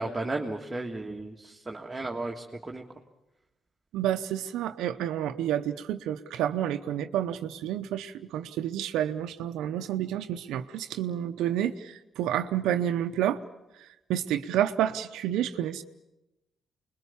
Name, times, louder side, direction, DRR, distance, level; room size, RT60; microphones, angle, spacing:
voice 1, 0.0-2.8, right 2 dB, 20° right, 0 dB, 1.8 m, -34 dB
voice 2, 3.9-13.4 13.8-15.8, right 11 dB, 90° right, 7 dB, 0.7 m, -29 dB
25.5 x 21.5 x 7.1 m, 0.97 s
cardioid pair, 90°, 0 cm